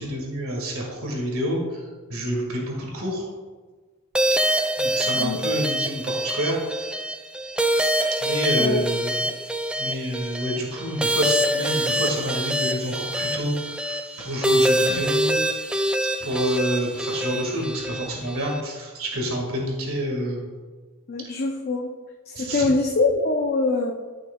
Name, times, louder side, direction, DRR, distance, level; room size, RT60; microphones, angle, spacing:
voice 1, 0.0-1.8 2.1-3.2 4.8-6.9 8.2-9.2 9.8-15.4 16.2-20.5 22.4-22.7, equal, 65° right, -1 dB, 1.9 m, -28 dB
sound 1, 4.1-18.6, equal, 5° right, 0.3 m, -25 dB
voice 2, 21.1-21.9 22.3-23.9, left 3 dB, 45° left, 1 dB, 0.6 m, -23 dB
12.5 x 6.3 x 2.3 m, 1.4 s
head